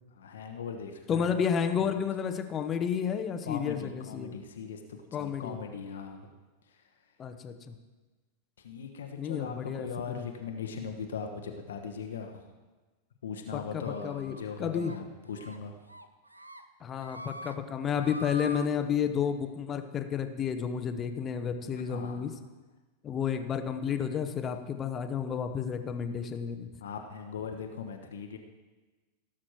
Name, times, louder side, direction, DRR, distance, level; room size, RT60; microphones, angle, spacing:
voice 1, 0.1-1.3 3.5-6.3 8.6-12.4 13.2-15.7 21.9-22.2 26.8-28.4, left 6 dB, 65° left, 5 dB, 1.0 m, -39 dB
voice 2, 1.1-4.4 5.1-5.6 7.2-7.8 9.2-10.3 13.5-14.9 16.8-22.3 23.0-26.7, left 7 dB, 25° left, 9 dB, 0.9 m, -31 dB
sound 1, 13.8-14.4 14.8-15.0 15.3-15.6 15.9-16.6 16.9-17.5 17.9-18.7, right 1 dB, 85° right, 0.6 m, -44 dB
17.0 x 7.5 x 4.6 m, 1.3 s
figure-of-eight pair, 90°, 0 cm